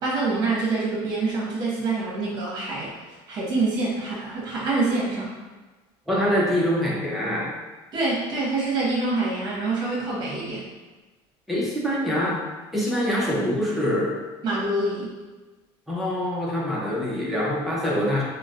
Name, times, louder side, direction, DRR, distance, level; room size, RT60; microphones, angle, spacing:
voice 1, 0.0-2.9 3.3-5.3 7.9-10.6 14.4-15.2, right 3 dB, 40° right, -5 dB, 0.9 m, -26 dB
voice 2, 6.1-7.5 11.5-12.4 12.7-14.2 15.9-18.2, equal, ahead, -6 dB, 0.5 m, -24 dB
3.0 x 2.1 x 2.5 m, 1.2 s
cardioid pair, 155°, 11 cm